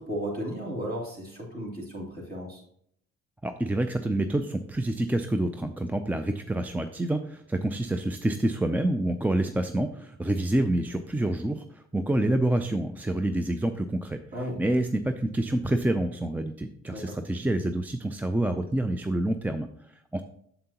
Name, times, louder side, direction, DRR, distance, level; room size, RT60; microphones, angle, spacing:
voice 1, 0.0-2.6 14.3-14.6 16.9-17.1, equal, 30° right, -2 dB, 2.9 m, -34 dB
voice 2, 3.4-14.2 14.6-19.7 20.1-20.2, right 1 dB, 5° right, 7 dB, 0.3 m, -27 dB
7.4 x 6.9 x 2.9 m, 0.68 s
cardioid pair, 90°, 30 cm